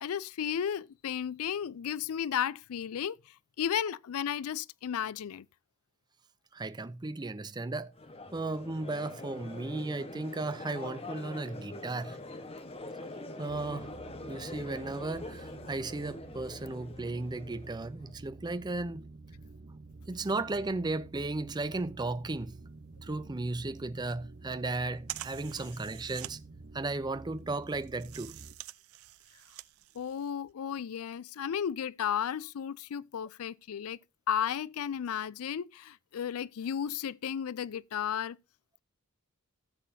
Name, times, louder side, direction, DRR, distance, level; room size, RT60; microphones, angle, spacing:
voice 1, 0.0-3.2 3.6-5.5 25.6-25.7 30.0-34.0 34.3-38.4, left 8 dB, 75° left, 0.4 m, -34 dB
voice 2, 6.5-7.9 8.3-12.2 13.4-13.9 14.3-19.0 20.1-22.6 23.0-26.4 26.7-28.3, right 2 dB, 20° right, 0.5 m, -35 dB
Crowd, 8.0-18.1, left 2 dB, 25° left, 1.2 m, -44 dB
sound 1, 13.5-28.6, right 3 dB, 45° right, 0.8 m, -50 dB
sound 2, 22.6-30.5, right 14 dB, 75° right, 0.5 m, -47 dB
15.0 x 7.3 x 2.7 m
head